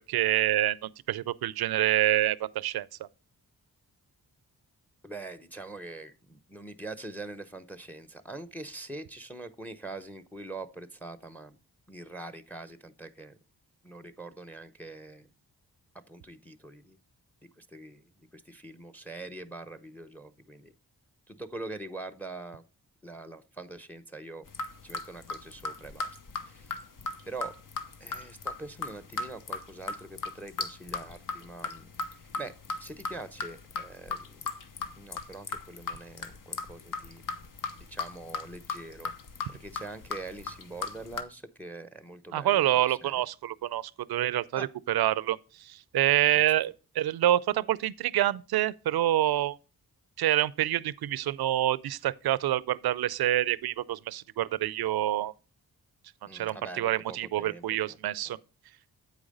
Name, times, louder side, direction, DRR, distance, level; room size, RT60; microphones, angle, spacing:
voice 1, 0.1-2.9 42.3-49.6 50.2-55.3 56.3-58.4, right 13 dB, 75° right, 0.5 m, -27 dB
voice 2, 5.0-11.6 11.9-13.4 13.8-15.3 16.1-17.0 17.6-20.7 21.3-22.6 23.0-24.4 24.8-26.2 26.4-26.8 27.3-27.5 28.0-32.5 32.8-34.4 35.0-37.2 37.8-39.1 39.5-43.2 44.6-44.7 46.3-46.4 56.3-58.0 58.3-58.4, right 2 dB, 5° left, 0.7 m, -43 dB
sound 1, 24.5-41.2, left 4 dB, 55° left, 1.0 m, -37 dB
8.3 x 4.9 x 5.2 m
cardioid pair, 50°, 38 cm